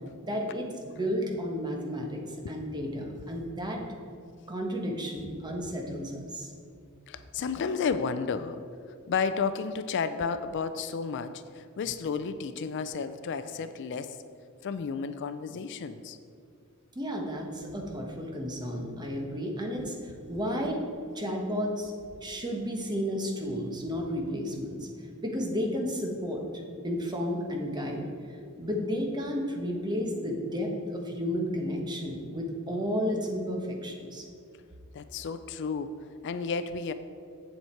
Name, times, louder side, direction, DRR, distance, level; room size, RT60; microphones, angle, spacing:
voice 1, 0.2-3.8 4.5-6.5 16.9-20.8 21.1-21.9 22.2-24.9 25.2-26.4 26.8-28.0 28.3-34.2, equal, 20° right, 1 dB, 1.1 m, -32 dB
voice 2, 7.1-8.6 9.1-14.2 14.6-16.2 28.4-28.6 34.9-36.9, left 5 dB, 55° left, 11 dB, 0.4 m, -32 dB
7.9 x 7.1 x 4.4 m, 2.4 s
head